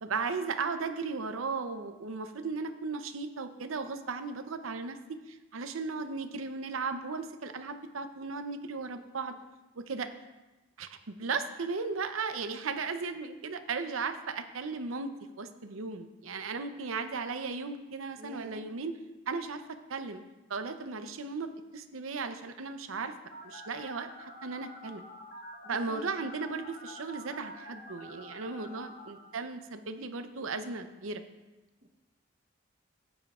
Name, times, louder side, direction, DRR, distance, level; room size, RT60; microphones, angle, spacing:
voice 1, 0.0-9.3 9.8-10.1 10.8-15.1 15.4-19.0 19.3-19.6 19.9-20.2 20.5-23.1 23.4-25.0 25.7-31.2, right 4 dB, 80° right, 9 dB, 0.7 m, -36 dB
voice 2, 18.2-18.6 25.6-26.0 28.6-28.9 31.8-31.9, right 1 dB, 45° right, 4 dB, 0.9 m, -46 dB
Telephone, 23.3-29.1, equal, 45° left, 1.8 m, -48 dB
13.5 x 9.1 x 2.4 m, 1.1 s
head